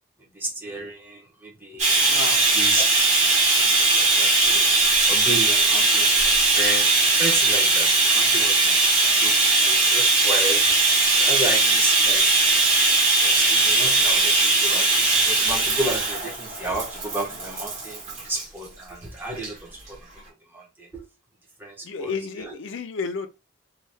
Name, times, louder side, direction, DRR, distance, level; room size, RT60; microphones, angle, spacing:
voice 1, 0.3-2.8 3.4-10.8 11.1-12.6 13.2-21.0 21.6-22.6, right 1 dB, 10° right, 0.7 m, -33 dB
Bathtub (filling or washing), 1.8-18.4 19.4-19.5 19.9-20.0, right 3 dB, 35° right, 1.2 m, -19 dB
voice 2, 2.1-2.4 21.8-23.3, left 5 dB, 65° left, 0.5 m, -31 dB
2.6 x 2.3 x 3.3 m
head